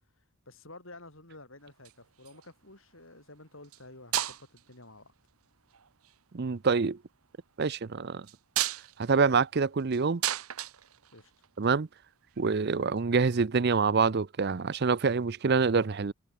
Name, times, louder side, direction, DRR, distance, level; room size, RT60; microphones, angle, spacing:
voice 1, 0.5-5.1 11.1-11.3, left 2 dB, 65° left, 7.1 m, -51 dB
sound 1, 1.7-2.5 3.6-3.8 4.1-4.7 5.7-6.1 8.2-11.6 13.0-13.1, right 13 dB, 80° right, 1.0 m, -34 dB
voice 2, 6.3-7.0 7.6-8.3 9.0-10.2 11.6-11.9 12.4-16.1, right 5 dB, 50° right, 0.5 m, -26 dB
head